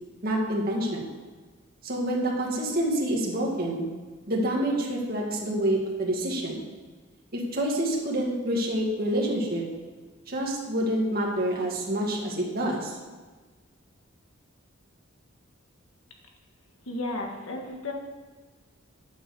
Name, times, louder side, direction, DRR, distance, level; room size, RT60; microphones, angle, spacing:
voice 1, 0.2-1.1 1.8-3.9 4.3-6.6 7.3-9.6 10.3-13.0, right 1 dB, 50° right, -2 dB, 2.0 m, -27 dB
voice 2, 16.8-17.9, left 2 dB, 90° left, 1 dB, 1.7 m, -33 dB
8.9 x 6.2 x 7.0 m, 1.4 s
head